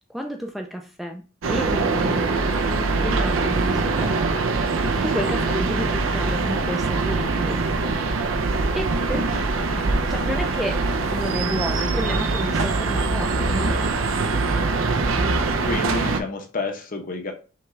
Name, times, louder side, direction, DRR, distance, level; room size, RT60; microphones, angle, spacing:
voice 1, 0.1-2.3 3.0-4.2 5.0-8.0 8.7-9.3 9.7-10.8 11.1-13.9, equal, ahead, 3 dB, 0.4 m, -31 dB
sound 1, 1.4-16.2, right 3 dB, 70° right, 0.5 m, -23 dB
voice 2, 15.6-17.3, left 2 dB, 45° left, 5 dB, 0.8 m, -29 dB
5.8 x 2.3 x 3.1 m, 0.35 s
head